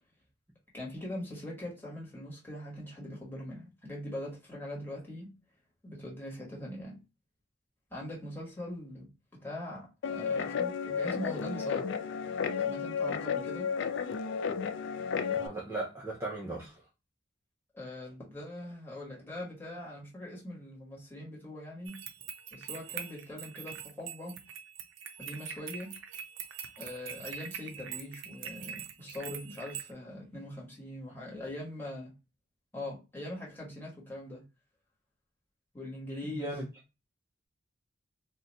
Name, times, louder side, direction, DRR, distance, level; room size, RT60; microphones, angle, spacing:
voice 1, 0.7-5.3 5.8-7.0 7.9-11.9 12.6-13.7 17.7-22.0 22.5-24.3 25.2-25.9 26.8-32.1 32.7-34.4 35.7-36.6, left 1 dB, 10° left, 1.3 m, -42 dB
Guitar, 10.0-15.5, left 6 dB, 65° left, 0.3 m, -33 dB
voice 2, 15.4-16.7 36.3-36.6, right 2 dB, 15° right, 0.6 m, -37 dB
sound 1, 21.9-29.9, right 8 dB, 75° right, 0.4 m, -43 dB
2.5 x 2.2 x 3.9 m
head